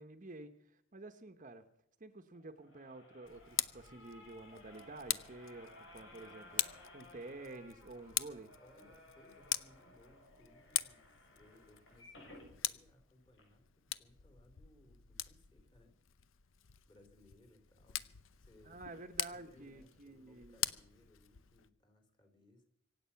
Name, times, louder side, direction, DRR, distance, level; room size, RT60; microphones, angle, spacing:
voice 1, 0.0-1.6 2.0-8.5 18.6-20.6, right 2 dB, 40° right, 9 dB, 1.1 m, -50 dB
sound 1, 2.3-12.5 13.0-13.1 13.3-13.4, left 1 dB, 65° left, 6.9 m, -58 dB
Tick, 3.2-21.7, left 14 dB, 90° left, 0.7 m, -43 dB
voice 2, 8.6-16.0 16.4-16.5 16.9-19.0 19.3-22.6, left 1 dB, 25° left, 6 dB, 3.5 m, -65 dB
25.5 x 8.7 x 5.8 m, 0.75 s
head